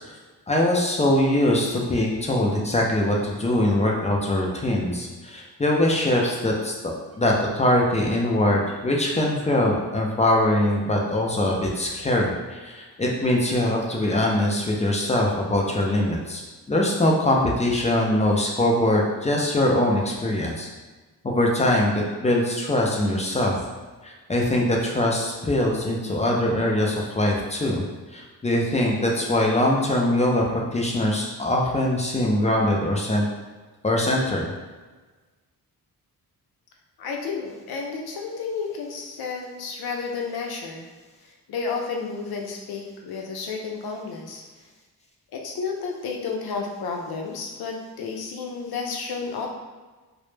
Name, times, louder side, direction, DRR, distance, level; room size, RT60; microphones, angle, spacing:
voice 1, 0.5-6.7 7.2-16.4 16.7-20.7 21.2-23.5 24.0-27.8 28.1-33.3 33.8-34.5, left 1 dB, 20° left, -1 dB, 0.3 m, -22 dB
voice 2, 37.0-40.9 41.2-44.4 45.3-49.5, left 5 dB, 75° left, 1 dB, 0.5 m, -31 dB
2.0 x 2.0 x 3.1 m, 1.3 s
cardioid pair, 95°, 37 cm